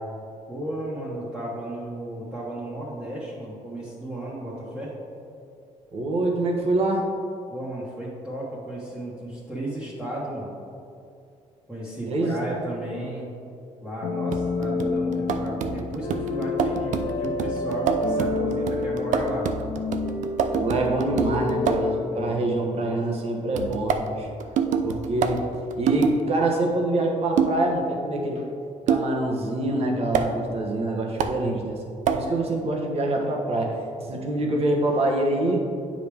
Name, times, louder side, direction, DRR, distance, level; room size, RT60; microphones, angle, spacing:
voice 1, 0.5-4.9 7.5-10.5 11.7-13.3 13.8-19.5 22.1-22.9 31.2-31.5, right 1 dB, 5° right, -9 dB, 1.4 m, -34 dB
voice 2, 5.9-7.1 12.1-12.4 20.6-24.3 24.8-25.5 25.8-28.4 28.9-31.8 32.1-33.8 34.1-35.7, right 2 dB, 50° right, 0 dB, 1.2 m, -25 dB
sound 1, 14.0-23.0, left 3 dB, 80° left, 0.9 m, -29 dB
sound 2, 14.3-22.0 23.6-26.2 27.4-27.7 28.9-29.2 30.1-30.3 31.2-31.4 32.1-32.3, right 6 dB, 70° right, 0.5 m, -27 dB
9.1 x 5.1 x 3.5 m, 2.6 s
cardioid pair, 120°, 13 cm